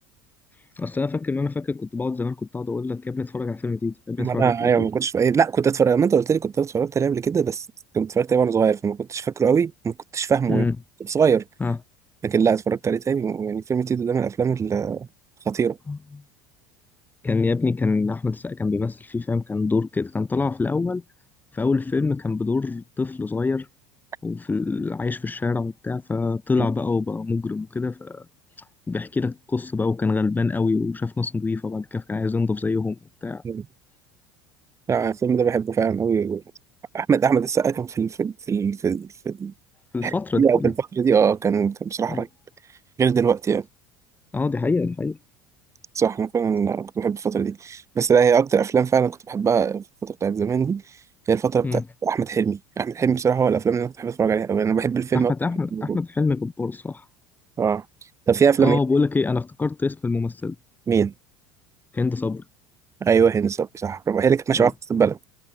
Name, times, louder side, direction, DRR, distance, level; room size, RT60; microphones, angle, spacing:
voice 1, 0.8-4.9 10.5-10.8 11.6-11.8 15.9-16.2 17.2-21.0 21.5-23.7 24.2-28.3 28.6-33.4 39.9-40.7 42.1-42.3 44.3-45.2 51.6-51.8 55.1-57.1 58.6-60.6 61.9-62.4 64.5-64.7, left 4 dB, 20° left, 1.9 m, -25 dB
voice 2, 4.2-7.6 7.9-10.6 11.1-11.4 12.2-15.1 15.5-15.8 33.4-33.6 34.9-36.4 36.9-39.5 40.0-42.3 43.0-43.6 45.9-50.8 51.3-55.3 55.7-56.0 57.6-57.8 58.3-58.8 60.9-61.1 63.0-65.2, right 6 dB, 30° right, 2.9 m, -22 dB
hypercardioid pair, 80°, 10 cm